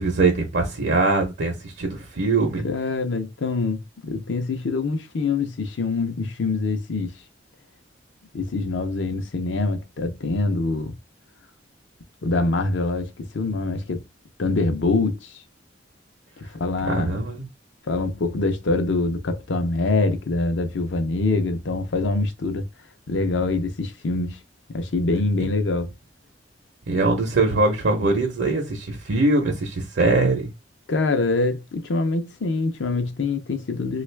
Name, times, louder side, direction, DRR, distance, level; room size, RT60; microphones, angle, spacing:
voice 1, 0.0-2.7 16.8-17.4 26.9-30.5, right 3 dB, 80° right, 0.7 m, -22 dB
voice 2, 2.6-7.1 8.3-10.9 12.2-14.0 14.4-15.3 16.4-17.2 17.9-22.6 23.1-24.4 24.7-25.9 30.9-34.0, left 3 dB, 75° left, 0.6 m, -24 dB
3.1 x 2.4 x 3.2 m
head